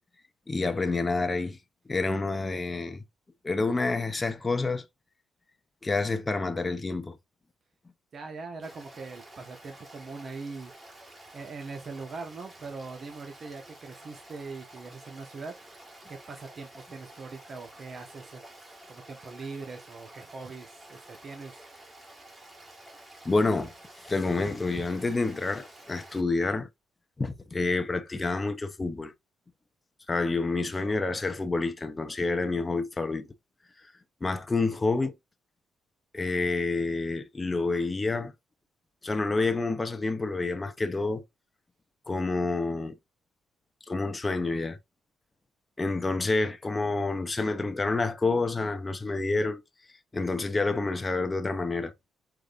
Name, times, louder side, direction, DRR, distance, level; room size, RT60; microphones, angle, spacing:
voice 1, 0.5-1.6 1.9-3.0 3.4-4.9 5.8-7.2 23.2-23.7 24.0-26.7 27.2-29.1 30.1-33.3 34.2-35.1 36.1-38.3 39.0-41.2 42.1-43.0 43.9-44.8 45.8-49.6 50.1-51.9, left 3 dB, 20° left, 0.7 m, -28 dB
voice 2, 8.1-11.0 11.3-15.8 16.1-21.6, right 4 dB, 50° right, 1.0 m, -42 dB
Stream, 8.6-26.2, right 1 dB, 25° right, 1.9 m, -50 dB
4.9 x 3.9 x 2.5 m
cardioid pair, 90°, 0 cm